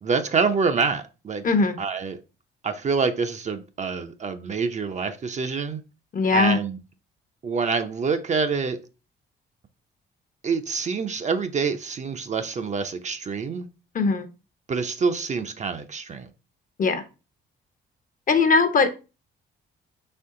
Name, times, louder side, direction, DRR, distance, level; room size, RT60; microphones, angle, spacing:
voice 1, 0.0-1.4 1.8-2.2 2.6-5.8 6.3-6.8 7.4-8.9 10.4-13.7 14.7-16.3, right 5 dB, 35° right, 0.5 m, -26 dB
voice 2, 1.4-1.8 6.1-6.6 13.9-14.3 16.8-17.0 18.3-18.9, left 4 dB, 45° left, 0.7 m, -20 dB
4.3 x 3.0 x 3.6 m
cardioid pair, 90°, 20 cm